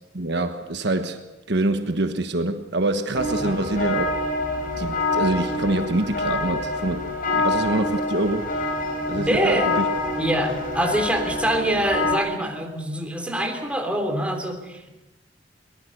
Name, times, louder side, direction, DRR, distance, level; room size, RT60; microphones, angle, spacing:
voice 1, 0.1-1.2 1.5-4.1 4.8-7.1 7.3-8.5 9.1-9.8, right 2 dB, 65° right, 1.3 m, -25 dB
sound 1, 3.1-12.2, left 2 dB, 50° left, 3.7 m, -26 dB
voice 2, 9.1-9.7 10.2-14.9, equal, 5° right, 3.2 m, -25 dB
23.0 x 20.5 x 6.7 m
head